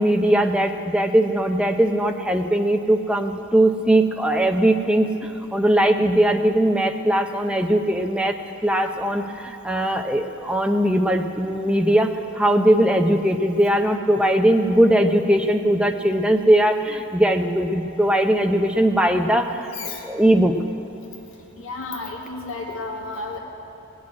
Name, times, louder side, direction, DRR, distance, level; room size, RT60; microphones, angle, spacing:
voice 1, 0.0-20.6, right 1 dB, 5° right, 5 dB, 0.6 m, -20 dB
voice 2, 19.7-20.0 21.5-23.4, left 3 dB, 70° left, 0 dB, 1.8 m, -32 dB
17.5 x 6.4 x 9.7 m, 3.0 s
head